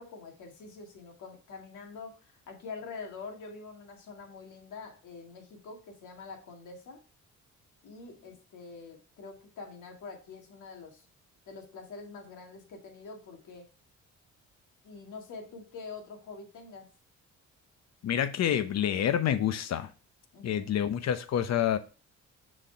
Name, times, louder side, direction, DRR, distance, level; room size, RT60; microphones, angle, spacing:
voice 1, 0.0-7.0 7.8-11.0 11.5-13.7 14.8-16.9 20.3-20.8, left 4 dB, 80° left, 2.1 m, -45 dB
voice 2, 18.0-19.9 20.4-21.8, left 9 dB, 60° left, 0.8 m, -28 dB
6.2 x 4.3 x 4.6 m
cardioid pair, 90°, 30 cm